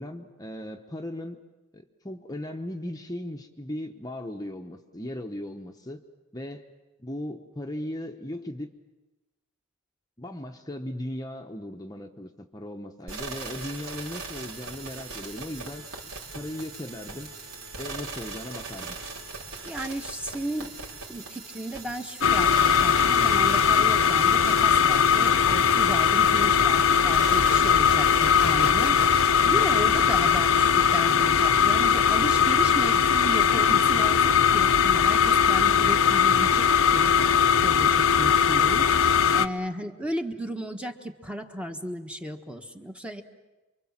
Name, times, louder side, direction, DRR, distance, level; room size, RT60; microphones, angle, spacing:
voice 1, 0.0-1.4 1.7-6.0 6.3-6.6 7.0-8.7 10.2-15.8 16.3-17.3 17.8-19.0, left 1 dB, 15° left, 3 dB, 1.0 m, -37 dB
sound 1, 13.1-30.6 31.0-31.1, right 4 dB, 80° right, 4.9 m, -40 dB
voice 2, 19.6-20.7 21.1-29.0 29.4-37.1 37.6-43.2, equal, 5° right, 5 dB, 1.2 m, -35 dB
sound 2, 22.2-39.5, left 7 dB, 65° left, 0.8 m, -20 dB
sound 3, 24.8-30.5, left 4 dB, 80° left, 1.1 m, -36 dB
28.5 x 24.0 x 7.4 m, 1.1 s
head